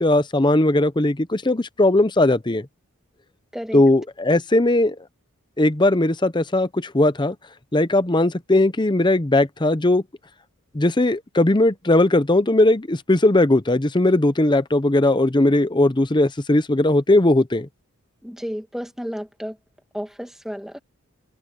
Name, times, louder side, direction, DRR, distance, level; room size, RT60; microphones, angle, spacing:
voice 1, 0.0-2.6 3.7-4.9 5.6-7.3 7.7-10.0 10.7-17.7, left 2 dB, 20° left, 0.8 m, -18 dB
voice 2, 3.5-3.8 18.2-19.6 19.9-20.8, equal, ahead, 1.8 m, -32 dB
head